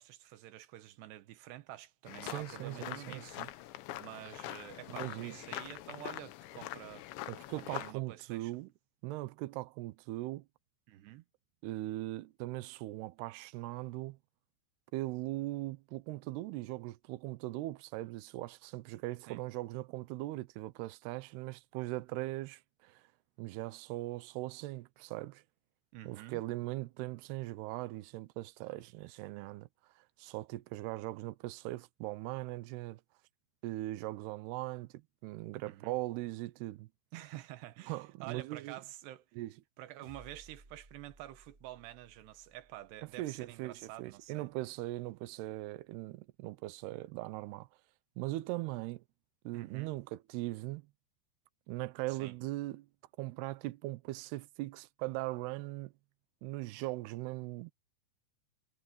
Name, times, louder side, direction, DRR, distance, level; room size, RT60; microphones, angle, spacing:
voice 1, 0.0-7.3 7.5-8.6 10.9-11.2 19.3-19.4 25.9-26.4 35.7-36.0 37.1-39.2 39.8-44.5 49.5-50.0 52.1-52.3, right 15 dB, 70° right, 2.9 m, -49 dB
sound 1, 2.1-7.9, left 15 dB, 75° left, 2.9 m, -44 dB
voice 2, 2.2-3.5 4.9-5.4 7.3-8.7 9.0-10.4 11.6-14.2 14.9-23.0 23.4-25.4 26.1-29.7 30.0-33.0 33.6-36.9 37.9-38.8 39.4-39.5 43.0-47.7 48.2-49.0 49.4-50.8 51.7-52.9 53.2-55.9 56.4-57.7, right 18 dB, 90° right, 2.3 m, -40 dB
sound 2, 40.0-44.6, right 2 dB, 25° right, 1.3 m, -61 dB
omnidirectional pair, 5.8 m